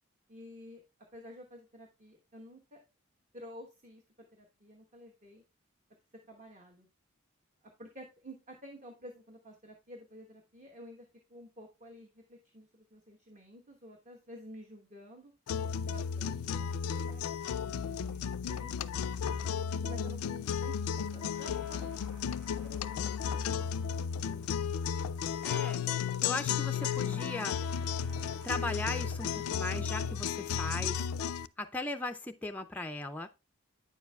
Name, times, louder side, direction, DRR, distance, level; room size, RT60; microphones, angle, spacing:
voice 1, 0.3-0.8 1.1-2.8 3.3-4.0 4.3-5.4 6.3-6.9 7.8-15.3 15.9-16.3 16.6-17.5 17.9-18.7 19.8-21.9 22.2-23.1, equal, 35° right, 1.1 m, -51 dB
sound 1, 15.5-31.5, left 7 dB, 85° left, 0.4 m, -34 dB
sound 2, 20.8-29.8, right 1 dB, 85° right, 1.8 m, -58 dB
voice 2, 25.4-25.8 26.2-27.6 28.4-31.0 31.6-33.3, left 2 dB, 5° left, 0.3 m, -38 dB
9.1 x 7.1 x 2.3 m
head